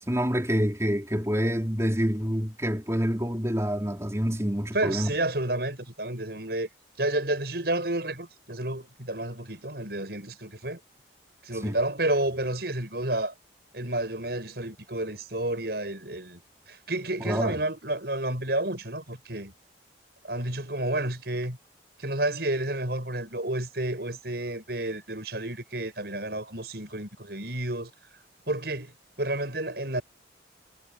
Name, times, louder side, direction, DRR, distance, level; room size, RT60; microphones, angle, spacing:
voice 1, 0.0-5.1 11.6-11.7 17.2-17.6, equal, 15° right, 4.0 m, -27 dB
voice 2, 4.7-6.7 7.0-10.8 11.4-13.3 13.7-16.4 16.7-19.5 20.2-21.6 22.0-27.9 28.5-30.0, right 1 dB, 60° right, 7.4 m, -30 dB
head